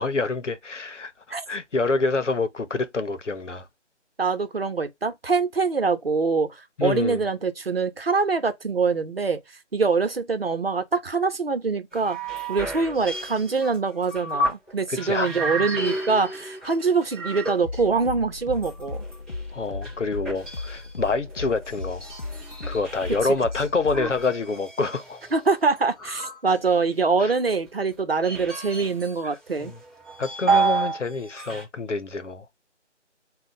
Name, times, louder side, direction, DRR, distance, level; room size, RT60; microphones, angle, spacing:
voice 1, 0.0-3.7 6.8-7.2 14.9-15.3 19.5-22.1 22.7-25.2 27.2-27.3 29.6-29.8 30.2-32.5, left 3 dB, 75° left, 0.9 m, -27 dB
voice 2, 4.2-9.4 9.7-12.2 12.5-19.0 25.3-29.7, right 4 dB, 55° right, 1.0 m, -24 dB
sound 1, 11.9-14.7 15.0-18.1 18.5-23.2 23.9-26.9 27.7-29.2 29.5-31.0 31.3-31.6, right 3 dB, 10° right, 1.1 m, -30 dB
sound 2, 15.7-24.3, left 3 dB, 50° left, 0.9 m, -37 dB
3.6 x 2.5 x 3.8 m
figure-of-eight pair, 160°, 36 cm